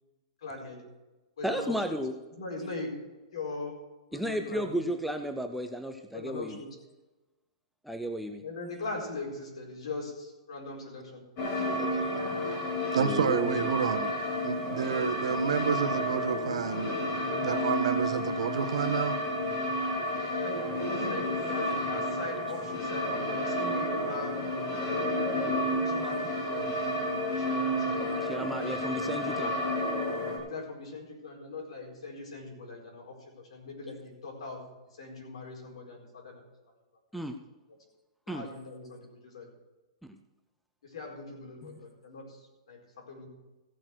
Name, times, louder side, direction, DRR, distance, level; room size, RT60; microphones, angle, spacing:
voice 1, 0.4-0.8 1.4-1.7 2.4-2.9 3.3-3.8 4.1-4.8 6.1-6.7 8.4-11.2 11.5-12.0 20.4-20.6 20.9-28.0 30.4-33.2 33.5-34.6 35.0-36.4 37.1-37.2 38.3-39.5 40.8-43.3, left 3 dB, 70° left, 1 dB, 4.6 m, -41 dB
voice 2, 1.4-2.1 4.1-6.6 7.8-8.4 13.0-13.8 28.0-29.5 37.1-37.4 38.3-38.5 41.6-41.8, right 1 dB, ahead, 5 dB, 0.4 m, -33 dB
sound 1, 11.4-30.4, equal, 30° left, 2.9 m, -31 dB
voice 3, 12.9-14.1 14.4-16.9 17.4-19.2, right 7 dB, 80° right, 8 dB, 1.2 m, -29 dB
15.5 x 6.5 x 6.1 m, 1.1 s
hypercardioid pair, 175°, 3 cm